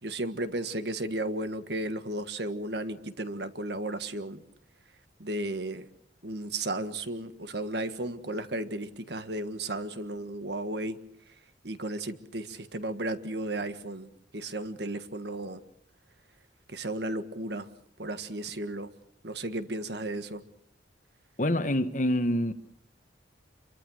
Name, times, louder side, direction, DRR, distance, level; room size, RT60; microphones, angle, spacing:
voice 1, 0.0-4.4 5.2-5.8 6.2-11.0 11.6-15.6 16.7-17.7 18.0-18.9 19.2-20.4, right 1 dB, 60° right, 1.6 m, -34 dB
voice 2, 21.4-22.5, left 1 dB, 40° left, 1.3 m, -26 dB
27.5 x 24.0 x 6.4 m
head